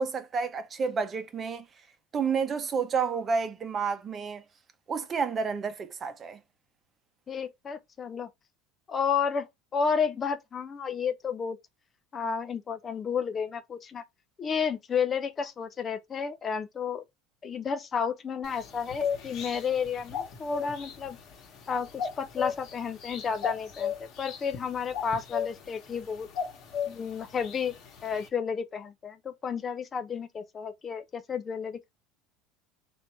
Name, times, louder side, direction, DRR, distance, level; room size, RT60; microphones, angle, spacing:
voice 1, 0.0-1.7 2.1-4.4 4.9-6.4, right 5 dB, 30° right, 0.8 m, -30 dB
voice 2, 7.3-8.3 8.9-9.5 9.7-11.6 12.1-14.0 14.4-17.0 17.4-21.2 21.7-26.3 26.9-27.7 28.0-31.9, left 6 dB, 30° left, 0.5 m, -31 dB
sound 1, 18.4-28.3, left 7 dB, 50° left, 1.3 m, -37 dB
3.4 x 2.6 x 4.2 m
supercardioid pair, 115°, 0 cm